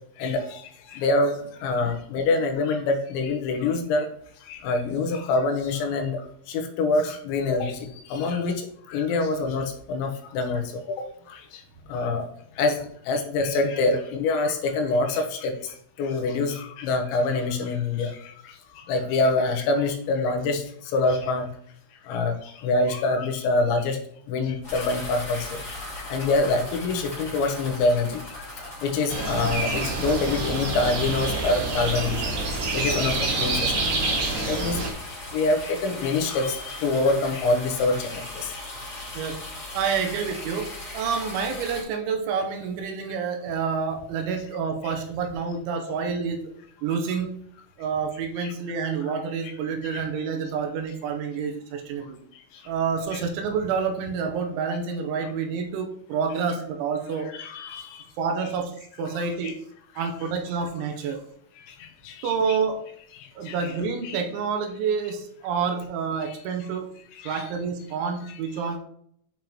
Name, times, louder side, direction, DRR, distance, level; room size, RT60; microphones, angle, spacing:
voice 1, 0.2-0.6 0.9-4.1 4.5-11.4 11.9-12.3 12.6-20.6 20.9-21.5 22.1-24.0 24.3-25.5 25.8-28.2 28.6-32.3 32.7-33.9 34.3-34.8 35.3-38.5 44.8-44.9 48.4-48.5 53.1-53.2 57.3-58.1 59.4-59.5 60.0-60.1 61.8-62.6 63.2-63.7 64.0-64.2 66.3-66.4 67.2-67.4 68.6-68.7, left 3 dB, 80° left, 4 dB, 3.1 m, -26 dB
sound 1, 24.6-41.8, left 1 dB, 15° left, 1.9 m, -39 dB
sound 2, 29.1-34.9, right 3 dB, 60° right, 1.7 m, -27 dB
voice 2, 39.7-46.4 46.8-47.3 47.8-52.2 52.7-57.3 58.2-58.7 59.0-59.6 60.0-61.2 62.2-62.8 63.4-66.9 67.2-68.8, right 6 dB, 85° right, 4 dB, 3.2 m, -28 dB
9.2 x 5.4 x 3.0 m, 0.65 s
omnidirectional pair, 5.5 m